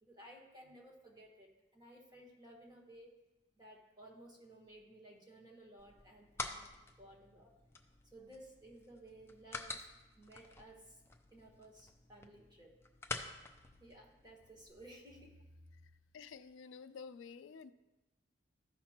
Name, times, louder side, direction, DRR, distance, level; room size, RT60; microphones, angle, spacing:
voice 1, 0.0-3.1 3.6-6.7 7.0-7.5 8.1-9.9 10.2-11.0 11.3-12.8 13.8-15.9, right 1 dB, 20° right, 0 dB, 1.5 m, -57 dB
sound 1, 5.8-14.7, left 3 dB, 15° left, 0.5 m, -48 dB
voice 2, 16.1-17.7, left 5 dB, 80° left, 12 dB, 0.4 m, -50 dB
14.5 x 5.9 x 2.9 m, 1.1 s
head